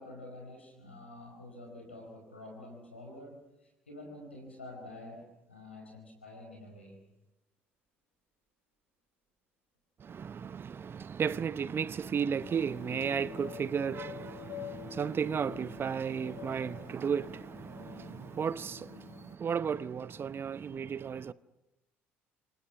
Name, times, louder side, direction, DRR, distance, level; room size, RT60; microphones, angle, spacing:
voice 1, 0.0-7.0, left 1 dB, 90° left, 4.7 m, -48 dB
voice 2, 10.0-21.3, right 7 dB, 40° right, 0.8 m, -34 dB
sound 1, 12.4-19.4, left 11 dB, 60° left, 2.1 m, -47 dB
29.0 x 27.0 x 5.8 m
figure-of-eight pair, 55°, 6 cm